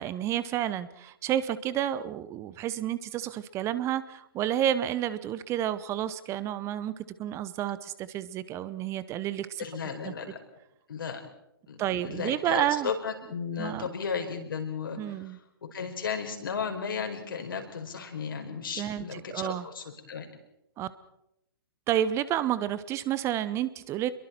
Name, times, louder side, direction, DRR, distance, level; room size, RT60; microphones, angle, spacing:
voice 1, 0.0-9.6 10.0-10.1 11.8-12.9 13.6-13.9 15.0-15.4 18.8-19.7 20.8-20.9 21.9-24.1, right 11 dB, 25° right, 15 dB, 0.8 m, -30 dB
voice 2, 9.6-10.4 10.9-11.2 11.7-15.4 15.7-20.3, left 6 dB, 65° left, 4 dB, 4.8 m, -34 dB
28.0 x 22.5 x 4.5 m, 0.81 s
figure-of-eight pair, 120°, 12 cm